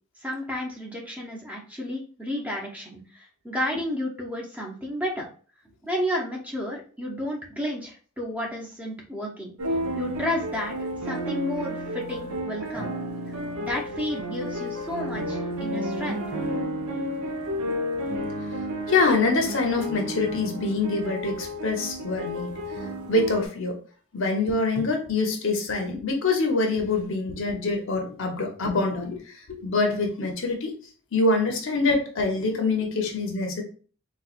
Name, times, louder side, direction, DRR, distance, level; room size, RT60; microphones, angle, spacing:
voice 1, 0.2-5.2 5.8-9.5 9.9-10.7 11.0-13.0 13.6-16.2, equal, 5° right, -1 dB, 0.6 m, -32 dB
sound 1, 9.6-23.5, equal, 85° right, 0.6 m, -31 dB
voice 2, 18.9-22.5 23.1-23.8 24.1-30.7 31.1-33.6, left 3 dB, 60° left, 3 dB, 0.7 m, -25 dB
4.1 x 2.3 x 2.4 m, 0.40 s
head